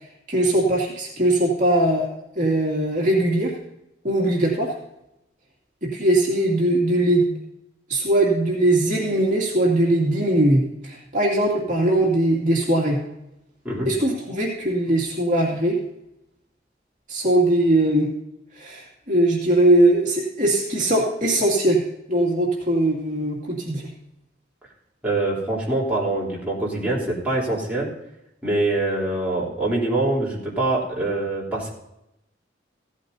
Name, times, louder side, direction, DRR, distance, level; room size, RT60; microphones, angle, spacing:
voice 1, 0.3-2.1 2.3-3.6 4.0-4.7 5.8-7.3 7.9-13.0 13.9-15.8 17.1-18.1 18.5-21.8 22.1-23.9, right 1 dB, 45° right, -3 dB, 2.5 m, -20 dB
voice 2, 25.0-27.9 28.4-31.7, right 2 dB, 10° right, -6 dB, 3.6 m, -24 dB
16.0 x 13.5 x 2.8 m, 0.85 s
head